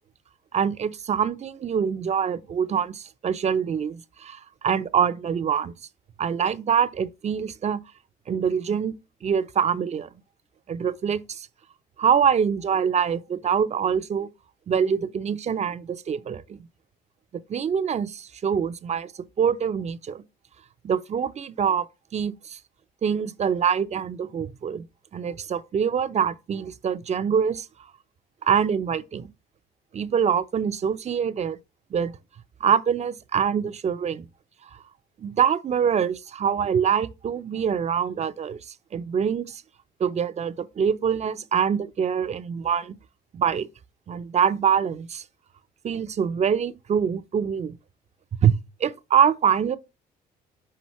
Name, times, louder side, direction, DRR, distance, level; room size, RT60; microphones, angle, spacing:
voice 1, 0.5-5.7 6.2-7.8 8.3-8.9 9.2-10.1 10.7-11.5 12.0-14.3 14.7-16.6 17.5-19.1 19.4-20.2 20.8-21.8 22.1-22.6 23.0-24.9 25.1-27.7 28.4-29.3 29.9-31.6 31.9-32.2 32.6-34.2 35.2-38.6 38.9-39.6 40.0-43.0 43.3-43.7 44.1-45.2 45.8-47.7 48.4-48.5 48.8-49.8, right 7 dB, 40° right, 0.7 m, -24 dB
5.8 x 5.4 x 3.1 m
supercardioid pair, 85°, 17 cm